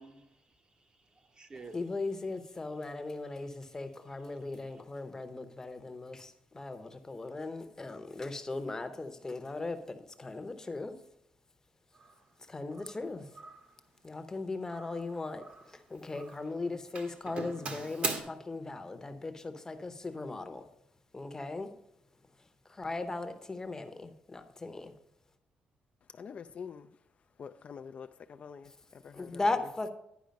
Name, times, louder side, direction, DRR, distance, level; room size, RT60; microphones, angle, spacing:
voice 1, 0.0-1.8 3.3-3.6 4.3-4.4 4.7-4.8, right 4 dB, 30° right, 0.8 m, -53 dB
voice 2, 1.7-10.9 12.5-13.2 14.0-15.4 15.9-20.6 21.1-21.7 22.8-24.9 29.1-29.9, left 3 dB, 20° left, 0.7 m, -38 dB
Doorbell, 12.0-12.2 12.7-13.0 13.3-13.7 14.7-16.5 17.0-18.2, right 3 dB, 50° right, 1.2 m, -40 dB
voice 3, 26.1-26.9 27.4-29.7, left 6 dB, 45° left, 0.3 m, -46 dB
10.5 x 4.9 x 5.2 m
cardioid pair, 125°, 3 cm